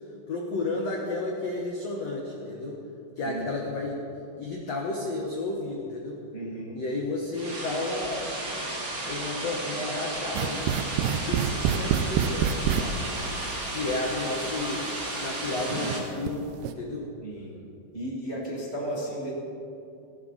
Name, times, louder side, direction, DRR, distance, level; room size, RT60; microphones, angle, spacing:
voice 1, 0.3-2.8 3.2-4.0 4.4-6.2 6.8-8.4 9.0-10.8 11.1-13.0 13.7-14.9 15.2-17.1, left 2 dB, 65° left, -1 dB, 1.6 m, -32 dB
voice 2, 6.3-6.8 17.2-17.6 17.9-19.3, right 1 dB, 25° right, -5 dB, 1.5 m, -34 dB
sound 1, 7.3-16.0, right 2 dB, 45° right, 1.1 m, -33 dB
sound 2, 10.3-12.8 13.9-14.0 14.7-14.8 15.6-16.3 16.6-16.7, right 9 dB, 80° right, 2.4 m, -26 dB
18.0 x 16.5 x 4.1 m, 2.6 s
omnidirectional pair, 4.9 m